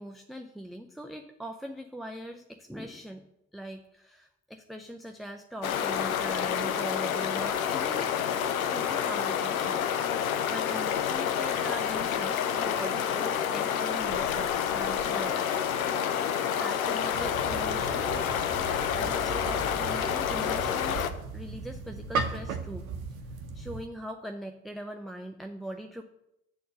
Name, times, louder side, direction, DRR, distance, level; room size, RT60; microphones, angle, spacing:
voice 1, 0.0-3.2 3.5-8.1 8.6-10.2 10.5-15.5 16.4-18.3 18.9-22.8 23.5-26.0, equal, ahead, 3 dB, 0.4 m, -41 dB
sound 1, 5.6-21.1, left 8 dB, 80° left, 0.6 m, -29 dB
sound 2, 17.1-23.9, right 4 dB, 80° right, 0.7 m, -37 dB
7.9 x 4.3 x 6.6 m, 0.81 s
figure-of-eight pair, 50°, 42 cm